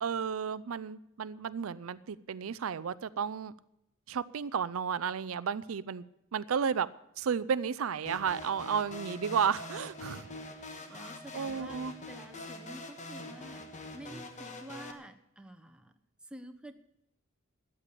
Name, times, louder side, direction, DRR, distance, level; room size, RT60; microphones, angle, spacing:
voice 1, 0.0-3.5 4.1-6.0 6.3-6.9 7.2-10.3 10.9-11.9, right 7 dB, 75° right, 17 dB, 0.5 m, -33 dB
sound 1, 8.0-14.9, left 2 dB, 35° left, 1.4 m, -44 dB
voice 2, 10.6-11.8 12.1-13.6 13.9-15.9 16.3-16.7, right 1 dB, 5° right, 6 dB, 0.8 m, -49 dB
13.0 x 8.5 x 8.3 m, 0.84 s
head